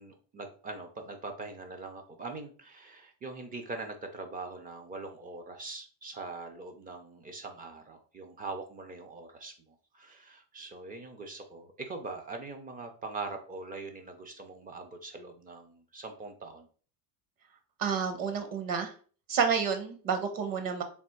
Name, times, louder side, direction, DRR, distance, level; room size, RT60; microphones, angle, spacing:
voice 1, 0.0-16.7, right 3 dB, 20° right, 5 dB, 0.4 m, -42 dB
voice 2, 17.8-18.9 19.3-20.8, right 6 dB, 45° right, 7 dB, 0.8 m, -29 dB
3.5 x 2.4 x 4.3 m, 0.41 s
supercardioid pair, 120°, 49 cm